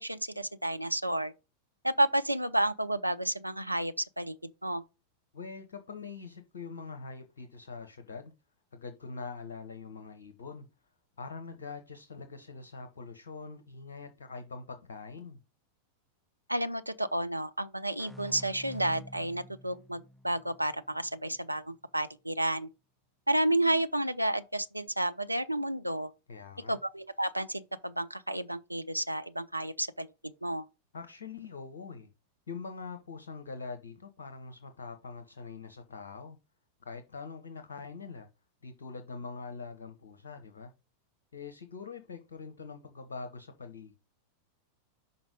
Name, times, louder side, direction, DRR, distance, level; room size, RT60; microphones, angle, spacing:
voice 1, 0.0-1.3 1.8-4.4 4.6-4.8 16.5-22.7 23.3-26.1 26.7-30.7, right 1 dB, 85° right, 0.4 m, -31 dB
voice 2, 5.3-8.3 8.7-10.7 11.2-15.4 26.3-26.8 30.9-32.1 32.5-36.4 36.8-38.3 38.6-40.7 41.3-44.0, left 4 dB, 65° left, 0.8 m, -43 dB
sound 1, 18.0-21.4, equal, ahead, 0.4 m, -49 dB
6.0 x 4.0 x 5.1 m
figure-of-eight pair, 90°, 0 cm